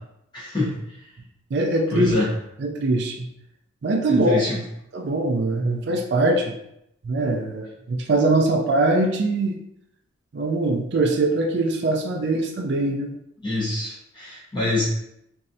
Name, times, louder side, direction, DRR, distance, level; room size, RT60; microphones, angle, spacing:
voice 1, 0.3-0.8 1.9-2.3 4.1-4.6 13.4-14.8, left 2 dB, 25° left, -7 dB, 1.1 m, -25 dB
voice 2, 1.5-2.1 2.6-3.3 3.8-4.4 4.9-6.6 7.0-9.6 10.3-13.1, right 2 dB, 55° right, 2 dB, 0.4 m, -22 dB
3.1 x 2.6 x 2.6 m, 0.79 s
head